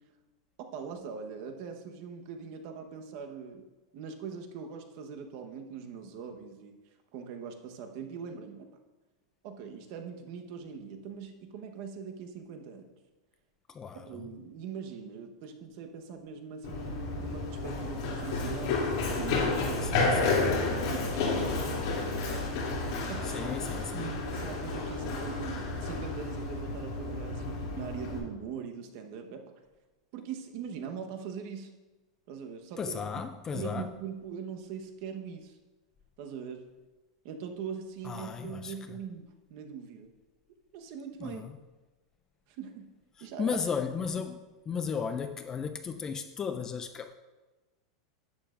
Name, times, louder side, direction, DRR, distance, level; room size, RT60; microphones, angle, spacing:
voice 1, 0.6-3.7 3.9-6.8 7.1-8.7 9.4-12.9 14.0-20.0 20.5-22.5 23.1-29.4 30.1-31.7 32.3-33.0 33.5-35.6 36.2-36.6 37.2-40.1 40.7-41.4 42.5-42.9 43.2-43.6, right 6 dB, 50° right, 4 dB, 1.1 m, -41 dB
voice 2, 13.7-14.3 19.8-20.4 23.2-24.1 32.8-33.9 38.0-38.7 41.2-41.5 43.4-44.4 44.7-47.1, left 6 dB, 20° left, 9 dB, 0.4 m, -35 dB
Run, 16.6-28.2, left 3 dB, 55° left, 2.8 m, -31 dB
11.5 x 8.7 x 2.5 m, 1.2 s
supercardioid pair, 150°, 3 cm